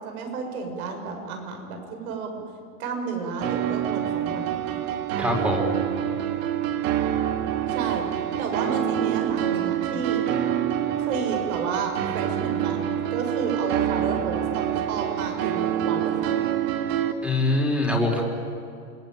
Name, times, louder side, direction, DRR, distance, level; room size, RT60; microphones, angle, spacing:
voice 1, 0.0-2.4 2.8-4.5 7.7-8.0 8.4-10.2 11.0-16.3, right 4 dB, 80° right, 4 dB, 6.7 m, -31 dB
sound 1, 3.4-17.1, right 11 dB, 65° right, 2.4 m, -26 dB
voice 2, 5.2-5.7 17.2-18.2, left 2 dB, 5° right, 1 dB, 4.9 m, -23 dB
28.5 x 21.0 x 9.1 m, 2.4 s
supercardioid pair, 140°, 43 cm